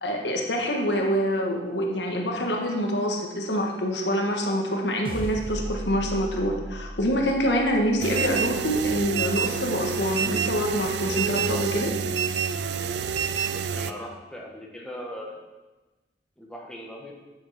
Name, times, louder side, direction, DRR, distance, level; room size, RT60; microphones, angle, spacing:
voice 1, 0.0-11.9, equal, 80° left, 2 dB, 1.5 m, -26 dB
sound 1, 5.0-9.6, right 1 dB, 30° right, 1.4 m, -37 dB
sound 2, 8.0-13.9, right 7 dB, 70° right, 0.4 m, -28 dB
voice 2, 13.5-15.4 16.4-17.1, equal, 5° left, -2 dB, 1.3 m, -39 dB
9.9 x 7.3 x 5.0 m, 1.1 s
head